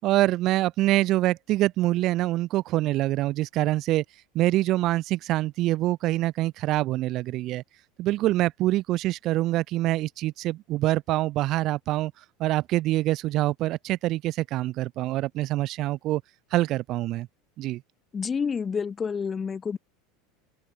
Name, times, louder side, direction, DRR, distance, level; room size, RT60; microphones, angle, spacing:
voice 1, 0.0-4.0 4.3-7.6 8.0-12.1 12.4-16.2 16.5-17.3 17.6-17.8, right 16 dB, 50° right, 4.7 m, -25 dB
voice 2, 18.1-19.8, left 6 dB, 25° left, 2.5 m, -29 dB
open air
supercardioid pair, 100°, 0 cm